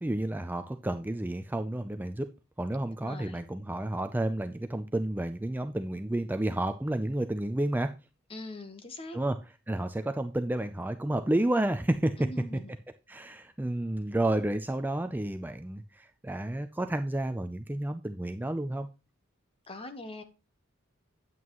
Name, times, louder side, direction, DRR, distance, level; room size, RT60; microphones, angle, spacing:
voice 1, 0.0-2.3 2.6-7.9 9.1-9.4 9.7-12.2 13.1-18.9, right 1 dB, 10° right, 0.4 m, -31 dB
voice 2, 3.0-3.4 8.3-9.2 12.2-12.7 19.7-20.2, left 1 dB, 25° left, 1.2 m, -42 dB
9.2 x 8.5 x 3.0 m
head